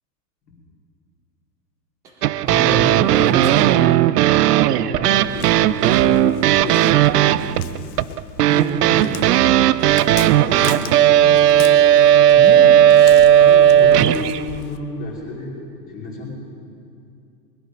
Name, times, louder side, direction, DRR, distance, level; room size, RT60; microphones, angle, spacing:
voice 1, 2.0-3.8 8.5-9.2 12.4-12.7, right 3 dB, 5° right, 1 dB, 0.4 m, -26 dB
sound 1, 2.2-14.4, right 11 dB, 70° right, 0.5 m, -15 dB
voice 2, 4.5-7.9 9.9-11.8 13.3-16.3, left 2 dB, 15° left, -5 dB, 2.5 m, -31 dB
Walk footsteps, 5.2-14.8, left 10 dB, 60° left, 0.9 m, -39 dB
20.0 x 11.5 x 5.1 m, 2.4 s
hypercardioid pair, 155°, 49 cm